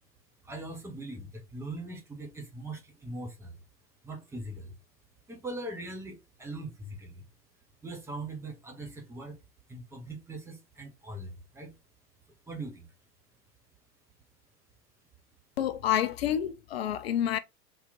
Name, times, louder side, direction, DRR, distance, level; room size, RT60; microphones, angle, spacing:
voice 1, 0.4-3.6 4.0-4.7 5.3-7.3 7.8-9.4 9.7-11.7 12.5-12.9, right 2 dB, 5° right, 0.6 m, -41 dB
voice 2, 15.6-17.4, left 10 dB, 40° left, 0.4 m, -28 dB
3.8 x 2.8 x 3.7 m
figure-of-eight pair, 95°, 48 cm